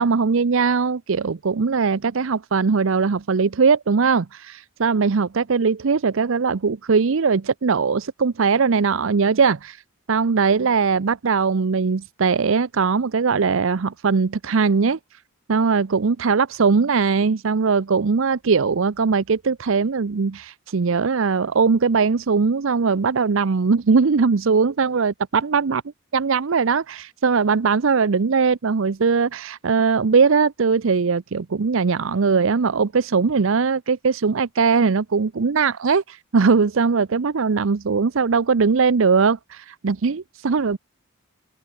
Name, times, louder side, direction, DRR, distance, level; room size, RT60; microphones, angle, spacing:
voice 1, 0.0-9.8 10.1-15.0 15.5-25.8 26.1-40.8, right 5 dB, 65° right, 0.6 m, -20 dB
head